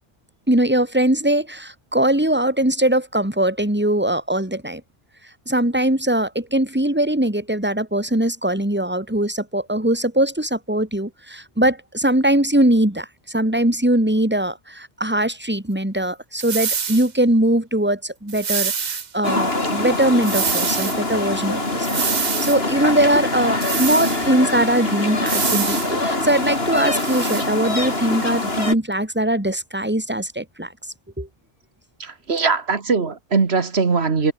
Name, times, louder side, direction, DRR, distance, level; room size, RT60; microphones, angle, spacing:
voice 1, 0.5-4.8 5.5-30.7 31.2-31.3, right 1 dB, 10° right, 3.1 m, -21 dB
sound 1, 16.4-17.1 18.3-19.1 20.2-21.0 21.8-22.6 23.6-24.3 25.3-25.9 26.8-27.5, right 6 dB, 45° right, 1.0 m, -25 dB
sound 2, 19.2-28.7, left 2 dB, 70° left, 4.8 m, -24 dB
voice 2, 32.0-34.3, right 4 dB, 80° right, 2.1 m, -21 dB
omnidirectional pair, 1.1 m